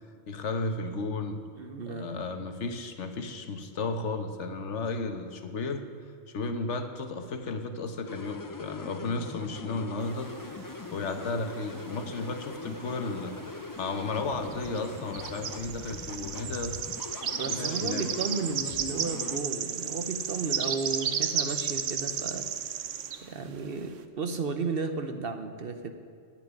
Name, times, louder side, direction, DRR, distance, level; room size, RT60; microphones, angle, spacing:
voice 1, 0.3-1.4 1.9-5.8 6.3-10.3 10.9-16.8 17.5-18.0, left 3 dB, 65° left, 7 dB, 1.3 m, -34 dB
voice 2, 1.6-2.4 17.4-22.5 23.2-25.9, right 4 dB, 55° right, 8 dB, 0.9 m, -34 dB
sound 1, 8.1-19.4, left 3 dB, 35° left, 0.3 m, -42 dB
sound 2, 10.1-11.7 12.0-13.2 13.5-13.7 14.4-23.2, right 8 dB, 75° right, 1.1 m, -33 dB
10.5 x 8.9 x 9.6 m, 2.3 s
omnidirectional pair, 1.3 m